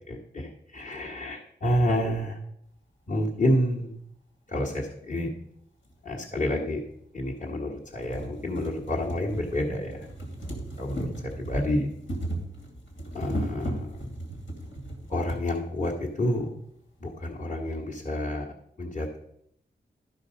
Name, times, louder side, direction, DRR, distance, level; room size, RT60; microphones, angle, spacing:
voice 1, 0.1-2.4 3.1-3.9 4.5-5.3 6.0-6.8 7.1-10.0 10.8-11.9 13.1-14.0 15.1-16.6 17.0-19.2, left 1 dB, 45° left, -5 dB, 1.6 m, -29 dB
sound 1, 5.9-6.0 6.9-7.0 7.5-7.6 7.8-15.4 16.3-16.4 16.7-16.8, right 1 dB, 80° left, 2.7 m, -36 dB
12.5 x 5.1 x 5.2 m, 0.72 s
cardioid pair, 70°, 19 cm